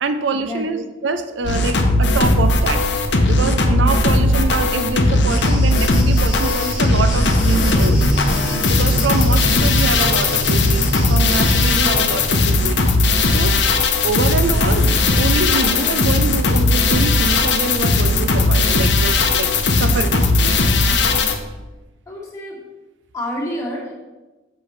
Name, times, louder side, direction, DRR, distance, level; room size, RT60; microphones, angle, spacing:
voice 1, 0.0-2.8 3.3-8.0 8.7-12.8 13.2-13.6 14.0-20.6, right 3 dB, 85° right, 10 dB, 0.5 m, -25 dB
sound 1, 1.4-21.3, left 2 dB, 70° left, 0.8 m, -17 dB
sound 2, 5.3-11.9, left 1 dB, 5° right, 1.6 m, -34 dB
Drum, 7.7-12.8, equal, 60° right, 2.3 m, -27 dB
voice 2, 20.9-21.3 22.1-22.6 23.1-23.9, equal, 15° left, -5 dB, 1.8 m, -29 dB
7.8 x 5.8 x 3.2 m, 1.1 s
head